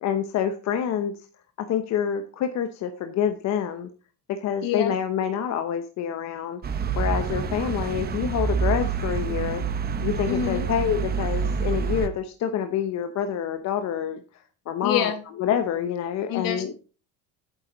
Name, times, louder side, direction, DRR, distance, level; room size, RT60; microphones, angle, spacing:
voice 1, 0.0-1.3 1.6-3.9 4.3-9.6 10.0-15.1 15.4-16.7, left 8 dB, 45° left, 7 dB, 1.0 m, -27 dB
voice 2, 4.6-5.0 10.3-10.7 14.8-15.2 16.3-16.8, left 9 dB, 65° left, 7 dB, 2.4 m, -26 dB
sound 1, 6.6-12.1, right 6 dB, 25° right, 1.0 m, -27 dB
11.5 x 9.1 x 3.9 m, 0.36 s
cardioid pair, 170°, 37 cm